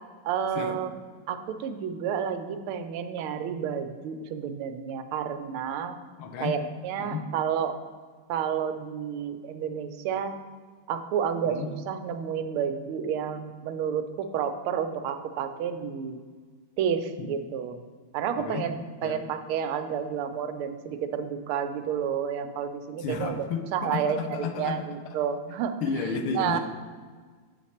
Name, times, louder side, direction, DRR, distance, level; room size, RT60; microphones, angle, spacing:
voice 1, 0.2-1.0 1.3-6.0 6.4-7.8 8.3-10.4 10.9-16.2 16.8-17.8 18.1-25.7 26.3-26.6, right 8 dB, 90° right, 8 dB, 1.5 m, -30 dB
voice 2, 6.2-6.6 7.0-7.3 11.5-11.7 17.2-17.3 18.4-18.7 19.0-19.2 23.0-24.9 25.8-26.6, left 5 dB, 85° left, 6 dB, 1.6 m, -32 dB
7.7 x 5.9 x 4.2 m, 1.5 s
omnidirectional pair, 2.3 m